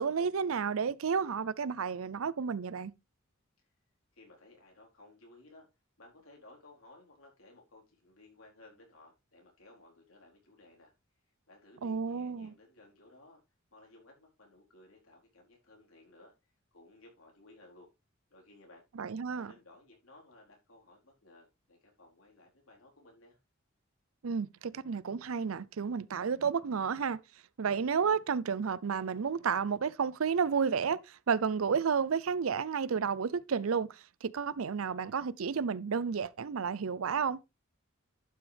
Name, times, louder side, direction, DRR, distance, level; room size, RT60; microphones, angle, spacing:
voice 1, 0.0-2.9 11.8-12.5 19.0-19.5 24.2-27.2 27.6-37.4, right 6 dB, 90° right, 0.5 m, -31 dB
voice 2, 4.1-5.7 6.0-10.9 11.5-13.4 13.7-16.3 16.7-17.9 18.3-18.8 19.3-23.4, left 2 dB, 90° left, 4.2 m, -58 dB
11.5 x 6.2 x 3.4 m
head